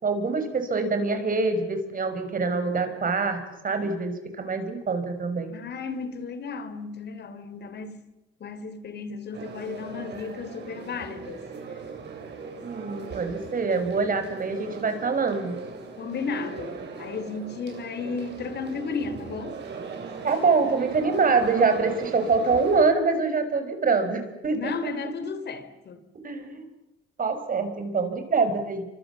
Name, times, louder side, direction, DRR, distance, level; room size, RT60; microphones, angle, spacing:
voice 1, 0.0-5.5 12.6-15.6 20.2-25.1 26.2-26.6 27.2-28.8, right 4 dB, 45° right, 5.7 m, -25 dB
voice 2, 5.5-7.9 8.4-11.4 16.0-19.6 24.5-26.0, left 5 dB, 60° left, 3.4 m, -34 dB
sound 1, 9.3-22.9, right 5 dB, 60° right, 8.0 m, -39 dB
29.5 x 25.0 x 7.4 m
cardioid pair, 90°, 20 cm